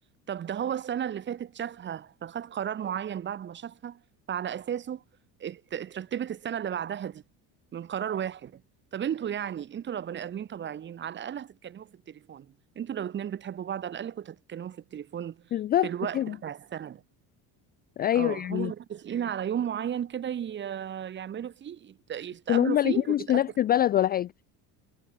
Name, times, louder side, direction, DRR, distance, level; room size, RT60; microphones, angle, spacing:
voice 1, 0.3-4.0 4.3-5.0 5.4-7.2 7.7-8.6 8.9-15.4 15.8-17.0 18.1-23.4, right 9 dB, 30° right, 2.6 m, -34 dB
voice 2, 15.5-16.4 18.0-18.7 22.5-24.3, left 12 dB, 25° left, 0.4 m, -25 dB
cardioid pair, 165°, 37 cm